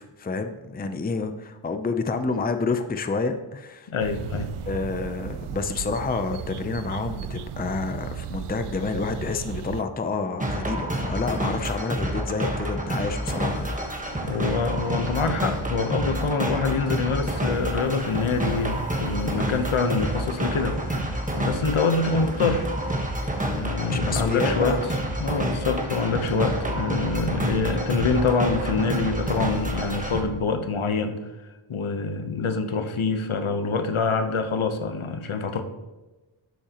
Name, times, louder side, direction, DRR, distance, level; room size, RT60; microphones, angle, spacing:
voice 1, 0.0-3.9 4.7-13.8 23.8-24.8, left 4 dB, 20° left, 8 dB, 0.5 m, -29 dB
voice 2, 3.9-4.5 14.2-22.7 23.5-24.8 25.2-31.2 31.7-35.6, left 4 dB, 70° left, 7 dB, 1.0 m, -25 dB
sound 1, 4.0-9.8, right 9 dB, 85° right, 0.6 m, -35 dB
sound 2, 10.4-30.2, right 1 dB, 15° right, 1.3 m, -28 dB
11.5 x 7.4 x 2.9 m, 1.1 s
wide cardioid pair, 110°, 50 cm